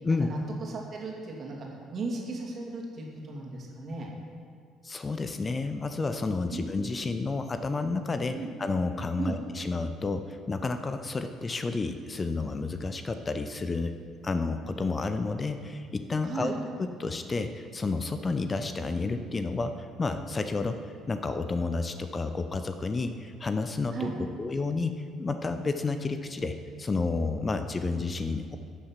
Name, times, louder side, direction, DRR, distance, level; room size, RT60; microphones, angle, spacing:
voice 1, 0.2-4.1 6.5-6.8 8.3-8.5 9.2-9.4 16.2-16.6 23.9-24.2, right 3 dB, 45° right, -1 dB, 2.5 m, -36 dB
voice 2, 4.8-14.0 14.2-16.5 17.0-20.8 21.1-24.1 24.4-28.6, left 3 dB, 30° left, 9 dB, 0.7 m, -30 dB
13.0 x 6.7 x 5.8 m, 2.2 s
hypercardioid pair, 50°, 0 cm